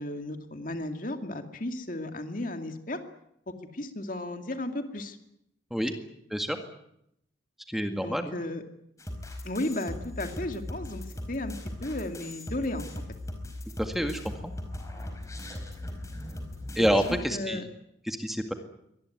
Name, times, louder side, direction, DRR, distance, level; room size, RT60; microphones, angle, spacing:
voice 1, 0.0-3.0 3.5-5.2 7.9-8.6 9.4-11.5 11.8-13.0 16.8-17.7, left 1 dB, 45° left, 6 dB, 2.5 m, -34 dB
voice 2, 7.7-8.3 13.8-14.5 16.8-17.6 18.1-18.5, equal, ahead, 5 dB, 1.9 m, -28 dB
sound 1, 9.0-17.2, left 1 dB, 15° left, 4.8 m, -39 dB
24.0 x 19.5 x 9.6 m, 0.77 s
head